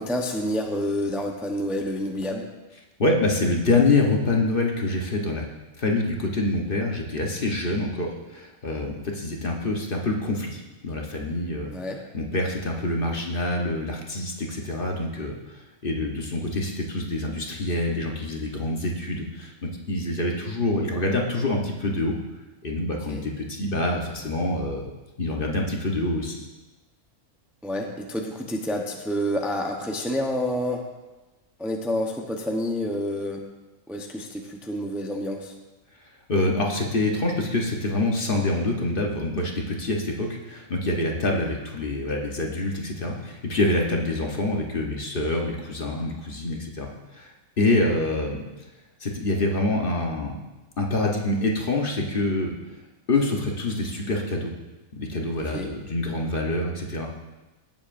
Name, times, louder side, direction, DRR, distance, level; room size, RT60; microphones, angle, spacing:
voice 1, 0.0-2.5 11.7-12.0 23.1-23.2 27.6-30.8 31.6-33.4 33.9-35.5 55.4-55.7, equal, ahead, 1 dB, 0.7 m, -28 dB
voice 2, 3.0-5.4 5.8-11.7 12.1-22.2 22.6-24.9 25.2-26.5 36.3-47.3 47.6-48.4 49.0-50.4 50.8-52.5 53.1-54.5 55.0-57.1, left 2 dB, 45° left, 0 dB, 1.2 m, -26 dB
17.0 x 7.4 x 2.6 m, 1.1 s
omnidirectional pair, 1.4 m